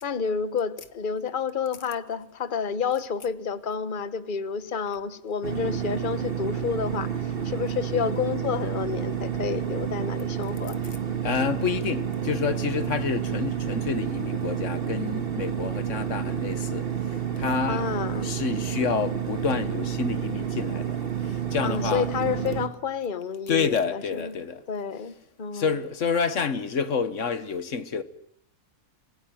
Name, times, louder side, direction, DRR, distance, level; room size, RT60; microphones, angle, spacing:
voice 1, 0.0-10.8 17.7-18.3 21.6-24.4 24.7-25.8, left 6 dB, 40° left, 1.2 m, -30 dB
sound 1, 5.4-22.7, right 8 dB, 40° right, 1.9 m, -30 dB
voice 2, 11.2-16.9 17.4-17.9 18.2-21.0 21.2-22.1 23.5-24.6 25.5-28.0, left 5 dB, 60° left, 1.5 m, -28 dB
26.0 x 18.5 x 9.1 m
omnidirectional pair, 1.5 m